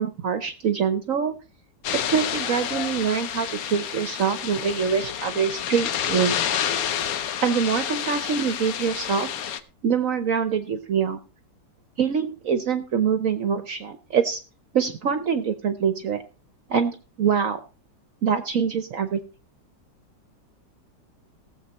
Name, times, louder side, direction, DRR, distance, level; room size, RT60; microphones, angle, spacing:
voice 1, 0.0-1.4 1.9-6.3 7.4-9.3 9.8-11.2 12.0-14.4 14.7-16.2 16.7-17.6 18.2-19.2, right 7 dB, 60° right, 11 dB, 1.0 m, -24 dB
sound 1, 1.8-9.6, left 9 dB, 60° left, 1.0 m, -29 dB
17.5 x 7.4 x 4.2 m, 0.33 s
omnidirectional pair, 2.0 m